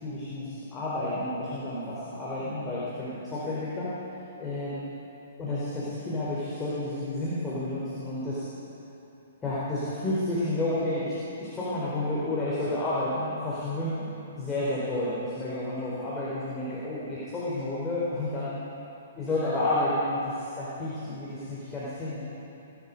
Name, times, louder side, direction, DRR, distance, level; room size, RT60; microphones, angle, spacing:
voice 1, 0.0-3.9 4.4-4.8 5.4-8.4 9.4-18.6 19.2-22.2, left 1 dB, 15° left, -9 dB, 4.1 m, -31 dB
21.5 x 12.5 x 5.3 m, 2.9 s
figure-of-eight pair, 125°, 0 cm